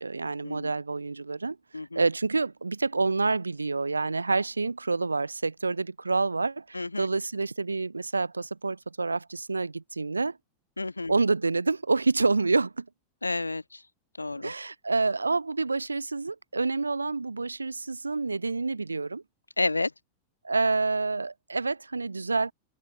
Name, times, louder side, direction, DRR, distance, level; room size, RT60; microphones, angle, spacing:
voice 1, 0.0-1.6 2.0-10.4 11.1-12.9 14.4-19.2 20.4-22.5, right 3 dB, 80° right, 5.7 m, -28 dB
voice 2, 10.8-11.1 13.2-13.8 14.2-14.5 19.6-19.9, left 2 dB, 80° left, 2.4 m, -30 dB
open air
figure-of-eight pair, 90°, 0 cm